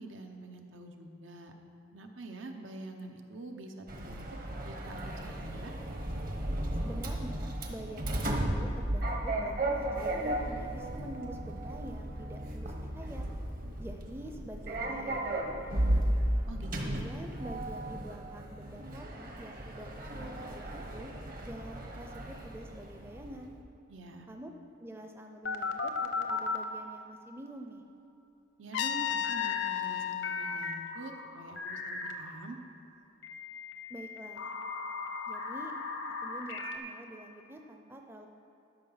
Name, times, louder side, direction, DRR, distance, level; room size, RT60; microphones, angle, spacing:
voice 1, 0.0-1.5 1.9-4.4 4.6-5.7 16.5-17.0 23.9-24.3 28.6-32.6, right 2 dB, 85° right, 4 dB, 1.0 m, -46 dB
Sliding door, 3.9-23.5, right 1 dB, 45° right, 1.0 m, -35 dB
voice 2, 6.8-13.3 13.8-16.1 16.8-21.1 21.5-23.5 24.3-24.5 24.8-27.8 33.9-34.5 35.3-35.7 36.2-38.3, right 1 dB, 10° right, 3 dB, 0.5 m, -47 dB
sound 1, 25.4-26.6 29.2-29.7 30.2-32.3 33.2-36.8, left 4 dB, 85° left, 0.9 m, -37 dB
Trumpet, 28.7-31.7, left 10 dB, 65° left, 0.3 m, -35 dB
12.5 x 5.9 x 5.7 m, 2.8 s
head